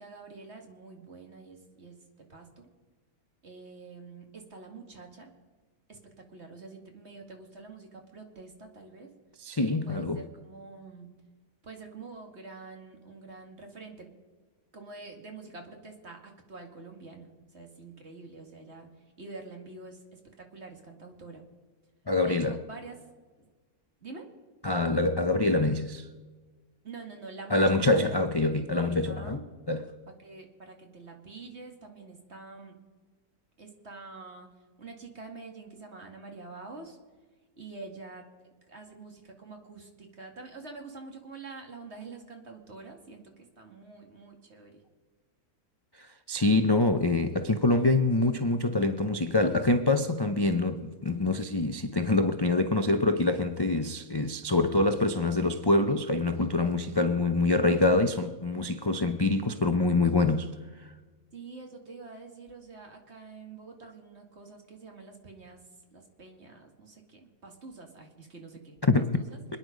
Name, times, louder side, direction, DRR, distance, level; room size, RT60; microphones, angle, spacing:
voice 1, 0.0-2.0 2.3-2.7 3.4-5.3 5.9-9.1 9.9-11.1 11.6-14.1 14.7-18.9 19.2-21.4 22.2-23.0 24.0-24.3 26.8-27.8 28.1-28.2 28.7-29.4 30.2-32.7 33.6-34.5 34.8-37.0 37.6-38.2 38.7-44.8 61.3-65.6 65.9-69.4, right 3 dB, 45° right, 2.5 m, -46 dB
voice 2, 9.4-10.2 22.1-22.6 24.6-26.1 27.5-29.4 29.7-29.8 46.0-60.5 68.8-69.2, left 2 dB, 30° left, 0.4 m, -25 dB
26.0 x 9.9 x 5.2 m
omnidirectional pair, 1.6 m